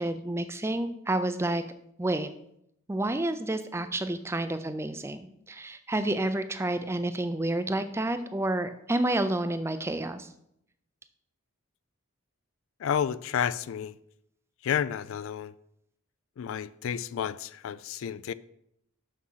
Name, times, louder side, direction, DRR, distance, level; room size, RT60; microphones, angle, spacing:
voice 1, 0.0-1.6 2.0-2.3 2.9-10.3, right 1 dB, 10° right, 0.4 m, -29 dB
voice 2, 12.8-14.0 14.6-15.5 16.4-18.3, left 8 dB, 65° left, 0.3 m, -31 dB
6.3 x 6.0 x 5.6 m
head